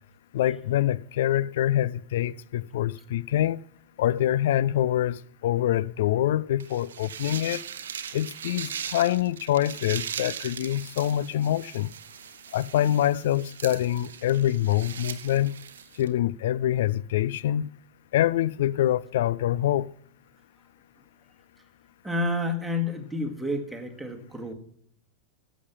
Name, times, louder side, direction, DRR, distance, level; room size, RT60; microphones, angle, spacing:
voice 1, 0.3-3.6 4.0-7.6 8.1-11.9 12.5-15.5 16.0-17.7 18.1-19.9, left 12 dB, 55° left, 0.4 m, -25 dB
sound 1, 6.6-16.1, right 8 dB, 65° right, 0.8 m, -39 dB
voice 2, 22.0-24.5, left 2 dB, 5° right, 1.8 m, -30 dB
14.5 x 7.2 x 5.9 m
figure-of-eight pair, 90°, 0 cm